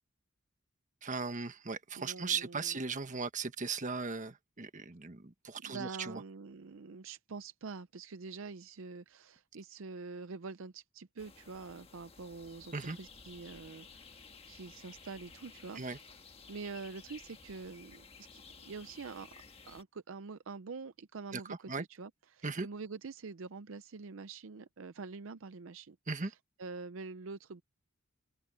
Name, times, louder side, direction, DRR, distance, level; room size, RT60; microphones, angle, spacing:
voice 1, 1.0-6.2 12.7-13.0 15.7-16.0 21.3-21.4 21.7-21.8 22.4-22.7 26.1-26.3, right 4 dB, 40° right, 1.3 m, -37 dB
voice 2, 2.0-2.8 5.6-15.8 16.5-19.3 19.7-27.6, right 4 dB, 70° right, 0.6 m, -46 dB
sound of ruisraakka, 11.2-19.8, left 5 dB, 30° left, 1.4 m, -55 dB
head